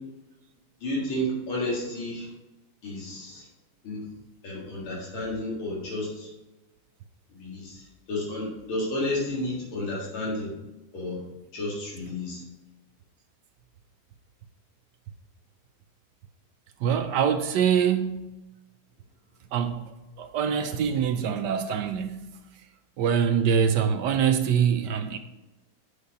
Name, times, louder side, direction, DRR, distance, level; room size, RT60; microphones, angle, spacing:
voice 1, 0.8-2.3 2.8-3.5 3.8-4.0 4.4-6.3 7.3-10.5 10.9-11.2 11.5-12.4, left 1 dB, 85° left, 2.7 m, -31 dB
voice 2, 16.8-18.3 19.5-19.9 20.2-22.2 23.0-25.2, right 7 dB, 75° right, 1.0 m, -24 dB
8.2 x 5.2 x 5.2 m
omnidirectional pair, 2.3 m